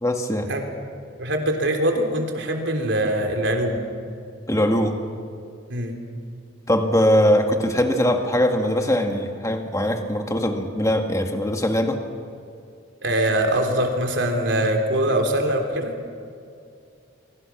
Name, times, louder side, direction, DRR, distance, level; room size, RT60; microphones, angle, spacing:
voice 1, 0.0-0.5 4.5-5.0 6.7-12.0, equal, 15° left, 4 dB, 1.9 m, -21 dB
voice 2, 1.2-3.8 5.7-6.0 13.0-15.9, right 1 dB, 70° right, 3 dB, 3.5 m, -23 dB
25.0 x 24.5 x 6.2 m, 2.3 s
head